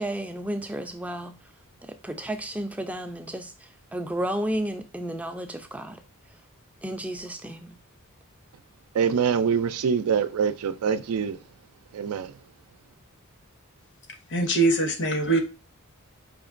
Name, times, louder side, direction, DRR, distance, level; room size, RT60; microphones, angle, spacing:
voice 1, 0.0-1.3 2.0-3.5 3.9-6.0 6.8-7.8, right 1 dB, 5° right, 0.4 m, -32 dB
voice 2, 8.9-11.4 11.9-12.3, right 6 dB, 90° right, 0.4 m, -24 dB
voice 3, 14.3-15.4, right 2 dB, 55° left, 0.8 m, -22 dB
4.9 x 2.9 x 2.5 m
head